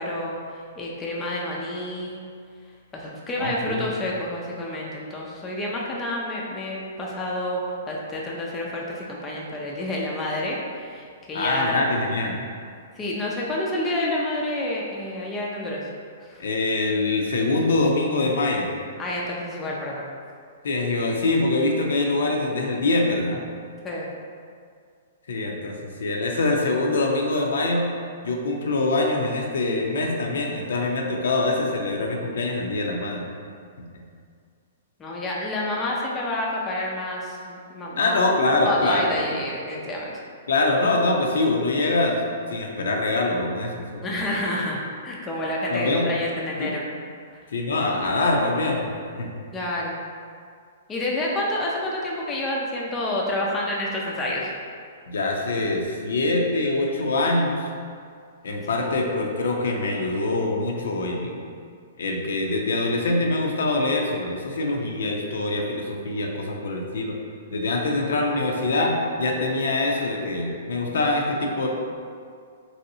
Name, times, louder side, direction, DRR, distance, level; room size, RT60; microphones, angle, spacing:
voice 1, 0.0-2.2 2.9-11.9 13.0-15.9 16.2-16.4 19.0-20.0 23.8-24.1 35.0-38.2 38.6-40.2 44.0-46.8 47.3-47.4 49.5-50.0 50.9-54.5, left 1 dB, 15° left, -4 dB, 0.4 m, -29 dB
voice 2, 3.4-3.9 11.3-12.4 16.4-18.7 20.6-23.4 25.3-27.9 28.2-33.3 38.0-39.1 40.5-44.1 45.7-46.1 46.6-46.7 47.5-49.3 55.1-57.7 58.4-61.4 62.0-67.2 67.5-71.7, left 2 dB, 80° left, 0 dB, 0.5 m, -24 dB
3.0 x 2.7 x 2.6 m, 2.2 s
hypercardioid pair, 160°, 0 cm